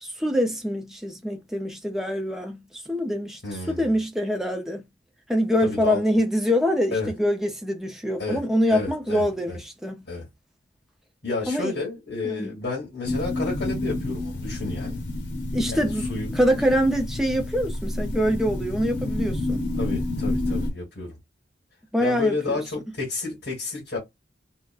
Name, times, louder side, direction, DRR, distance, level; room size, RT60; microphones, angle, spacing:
voice 1, 0.0-3.4 3.7-4.8 5.3-10.0 11.5-11.7 12.2-12.5 15.5-16.1 16.3-19.6 21.9-22.3, equal, ahead, 0.6 m, -24 dB
voice 2, 3.4-4.0 5.6-6.0 6.9-7.1 8.2-8.4 8.7-9.6 10.0-10.3 11.2-15.0 15.7-16.3 19.8-21.2 22.0-24.0, left 3 dB, 70° left, 1.7 m, -31 dB
sound 1, 13.0-20.7, left 2 dB, 85° left, 0.9 m, -29 dB
3.6 x 2.1 x 2.4 m
head